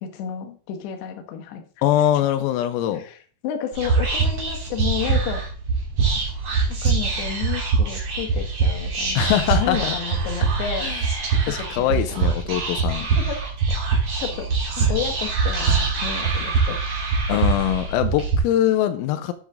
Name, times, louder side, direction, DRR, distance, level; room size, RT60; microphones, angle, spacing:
voice 1, 0.0-1.6 2.9-5.4 6.7-10.9 11.4-12.6 13.2-13.4 14.2-14.5 14.8-16.8, left 8 dB, 70° left, 4 dB, 3.1 m, -31 dB
voice 2, 1.8-3.0 9.2-10.0 10.8-11.0 11.5-13.1 17.3-19.3, left 12 dB, 85° left, 9 dB, 3.5 m, -22 dB
Whispering, 3.7-18.4, right 4 dB, 40° right, 2.6 m, -23 dB
10.5 x 7.4 x 3.6 m, 0.43 s
omnidirectional pair, 6.0 m